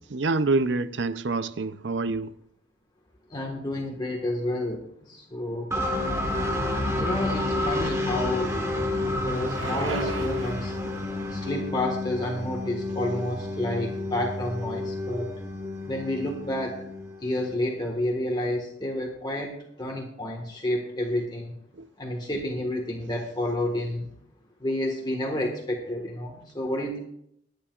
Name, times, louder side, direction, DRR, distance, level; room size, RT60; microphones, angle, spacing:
voice 1, 0.1-2.3 21.8-21.9, right 3 dB, 65° right, 0.6 m, -26 dB
voice 2, 3.3-5.7 7.0-8.5 9.1-10.7 11.3-15.3 15.8-16.8 17.2-21.5 22.0-24.1 24.6-27.0, left 1 dB, 25° left, 1.6 m, -30 dB
sound 1, 5.7-17.5, left 1 dB, 15° right, 1.6 m, -30 dB
Bicycle, 7.3-13.3, right 4 dB, 90° right, 1.3 m, -41 dB
21.5 x 10.0 x 2.5 m
head